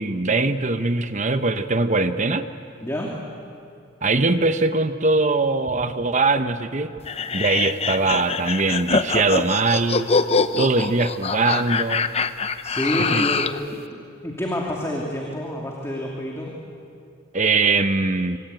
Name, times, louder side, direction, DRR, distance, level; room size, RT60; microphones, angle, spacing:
voice 1, 0.0-2.5 4.0-6.9 7.3-10.1 10.6-12.1 13.1-13.2 17.3-18.4, right 3 dB, 35° right, 10 dB, 0.9 m, -21 dB
voice 2, 2.8-3.1 12.6-13.5 13.9-16.5, equal, 15° left, -2 dB, 2.6 m, -28 dB
sound 1, 7.1-13.6, left 4 dB, 30° left, 0.7 m, -24 dB
25.5 x 25.0 x 9.2 m, 2.5 s
head